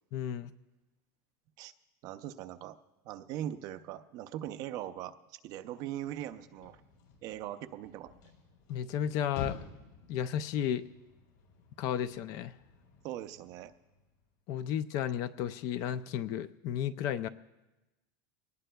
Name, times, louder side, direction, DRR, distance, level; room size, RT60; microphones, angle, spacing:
voice 1, 0.1-0.5 8.7-9.6 10.1-10.8 11.8-12.5 14.5-17.3, left 9 dB, 35° left, 14 dB, 0.4 m, -33 dB
voice 2, 2.0-2.8 3.0-6.8 7.2-8.1 13.0-13.7, right 12 dB, 35° right, 11 dB, 0.5 m, -40 dB
sound 1, 6.1-14.3, left 4 dB, 60° left, 6.3 m, -50 dB
23.5 x 19.0 x 2.3 m, 1.1 s
supercardioid pair, 180°, 10 cm